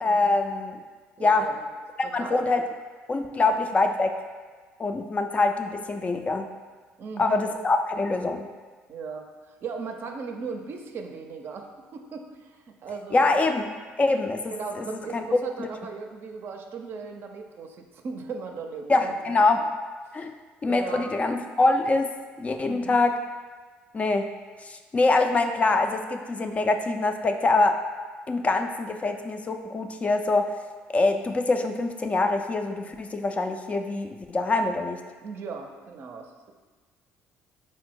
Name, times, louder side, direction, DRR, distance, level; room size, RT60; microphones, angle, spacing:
voice 1, 0.0-0.8 1.2-1.5 2.1-2.6 3.1-4.1 4.8-6.5 7.2-8.5 13.1-13.6 14.0-14.9 15.1-15.7 18.9-19.6 20.1-20.3 20.6-23.2 23.9-24.3 24.6-27.8 28.3-30.5 30.9-35.0, left 3 dB, 30° left, 6 dB, 0.3 m, -24 dB
voice 2, 1.2-1.6 2.0-2.5 3.4-3.5 7.0-7.4 8.9-13.3 14.5-19.4 20.1-20.2 20.7-21.1 22.6-23.0 35.2-36.5, right 5 dB, 55° right, 4 dB, 0.5 m, -37 dB
4.3 x 2.0 x 4.5 m, 1.4 s
supercardioid pair, 80°, 5 cm